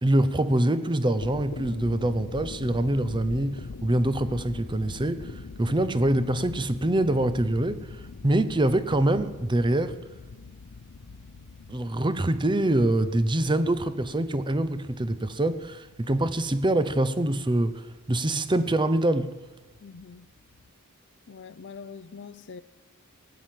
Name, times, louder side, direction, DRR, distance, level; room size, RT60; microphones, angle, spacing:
voice 1, 0.0-5.3 5.6-7.9 8.2-10.0 11.7-19.3, right 1 dB, 20° right, 0.7 m, -25 dB
sound 1, 1.1-20.7, left 4 dB, 90° left, 0.7 m, -44 dB
voice 2, 19.8-20.3 21.3-22.6, left 5 dB, 55° left, 0.5 m, -43 dB
18.5 x 7.7 x 8.9 m
head